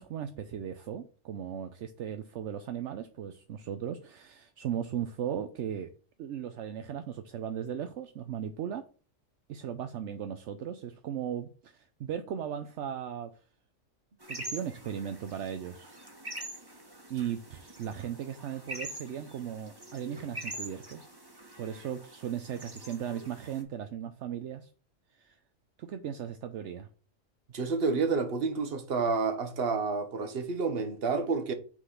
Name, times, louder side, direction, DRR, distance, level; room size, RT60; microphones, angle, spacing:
voice 1, 0.0-5.9 6.2-8.9 9.5-13.3 14.3-16.0 17.1-21.0 21.6-24.7 25.1-25.4 25.8-26.9, right 9 dB, 70° right, 0.9 m, -37 dB
sound 1, 14.2-23.6, right 1 dB, 20° right, 1.4 m, -44 dB
voice 2, 27.5-31.5, right 4 dB, 50° right, 1.2 m, -29 dB
6.0 x 4.0 x 5.7 m
omnidirectional pair, 1.3 m